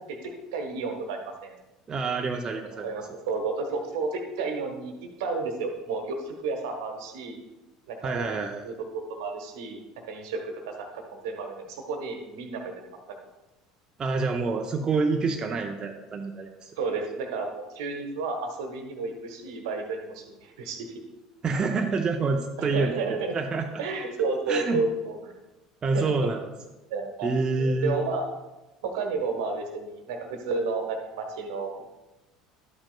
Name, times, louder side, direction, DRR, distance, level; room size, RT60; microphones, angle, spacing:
voice 1, 0.1-1.6 2.7-7.4 7.9-8.3 8.6-9.8 10.1-13.2 16.8-21.0 22.6-23.3 23.8-25.3 25.9-26.1 26.9-28.3 28.8-31.8, right 4 dB, 60° right, 4 dB, 1.2 m, -32 dB
voice 2, 1.9-2.9 8.0-8.6 14.0-16.7 21.4-23.7 24.5-24.8 25.8-26.4 27.2-28.0, right 3 dB, 25° right, 3 dB, 0.7 m, -27 dB
12.0 x 8.7 x 2.3 m, 1.1 s
figure-of-eight pair, 65°, 3 cm